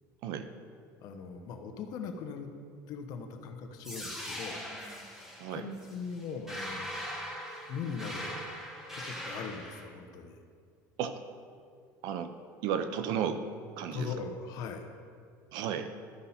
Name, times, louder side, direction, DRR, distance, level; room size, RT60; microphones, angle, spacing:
voice 1, 1.0-2.5 2.9-4.6 5.5-7.0 7.7-8.5 8.9-10.4 13.9-14.8, left 5 dB, 60° left, 5 dB, 1.0 m, -40 dB
sound 1, 3.8-9.8, equal, 5° right, 1.7 m, -41 dB
voice 2, 12.6-13.4 13.8-14.1 15.5-15.9, right 8 dB, 70° right, 9 dB, 0.7 m, -33 dB
12.5 x 5.5 x 4.3 m, 2.2 s
cardioid pair, 140°, 7 cm